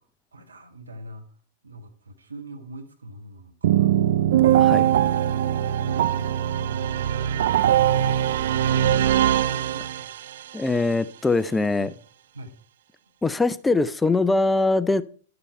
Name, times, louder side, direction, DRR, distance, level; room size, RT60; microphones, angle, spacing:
voice 1, 0.3-1.3 1.6-4.0 4.5-4.9 5.5-10.1 11.8-12.0 12.3-12.5, right 1 dB, 85° right, 6 dB, 1.6 m, -42 dB
sound 1, 3.6-10.4, right 11 dB, 65° right, 0.4 m, -21 dB
voice 2, 10.5-11.9 13.2-15.0, left 3 dB, 10° left, 15 dB, 0.5 m, -22 dB
11.0 x 6.8 x 4.4 m, 0.42 s
hypercardioid pair, 100°, 0 cm